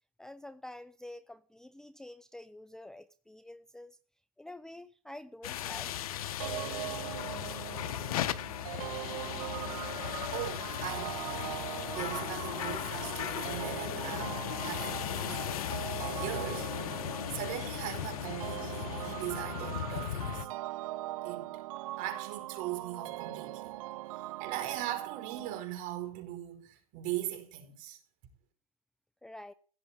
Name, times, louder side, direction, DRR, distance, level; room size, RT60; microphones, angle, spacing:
voice 1, 0.2-4.0 4.4-5.9 27.9-28.0 29.2-29.5, left 1 dB, 5° left, 0.6 m, -48 dB
sound 1, 5.4-20.5, left 11 dB, 80° left, 1.2 m, -37 dB
sound 2, 6.4-25.6, right 17 dB, 70° right, 0.6 m, -41 dB
voice 2, 10.3-11.3 11.9-16.7 17.3-20.5 21.2-21.6 22.0-23.8 24.1-28.0, right 13 dB, 45° right, 4.7 m, -40 dB
16.0 x 7.5 x 7.5 m
supercardioid pair, 130°, 18 cm